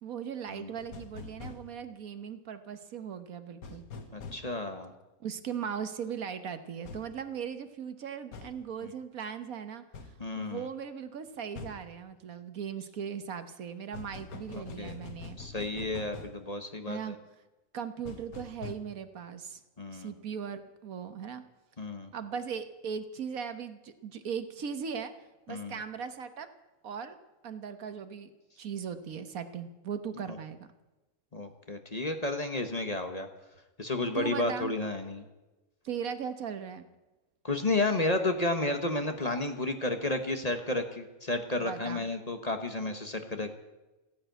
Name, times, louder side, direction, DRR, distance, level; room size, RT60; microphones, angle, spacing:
voice 1, 0.0-3.8 5.2-9.8 10.4-15.4 16.9-17.2 17.7-19.6 19.9-21.4 22.1-25.1 25.5-26.5 26.8-27.2 27.4-28.3 28.6-30.7 34.1-34.7 35.8-36.8 41.6-42.0, right 7 dB, 75° right, 9 dB, 1.6 m, -38 dB
sound 1, 0.8-1.6 3.6-4.4 6.8-7.1 8.3-8.5 9.9-10.1 11.6-11.8 13.9-16.4 18.0-18.7, left 4 dB, 85° left, 1.7 m, -44 dB
voice 2, 4.1-4.9 8.8-8.9 10.2-10.7 14.5-14.9 15.4-17.1 19.8-20.1 21.8-22.1 25.5-25.8 30.3-30.4 31.3-33.3 33.8-35.2 37.4-43.5, left 2 dB, 30° left, 6 dB, 1.2 m, -32 dB
15.0 x 10.0 x 9.1 m, 1.1 s
omnidirectional pair, 1.5 m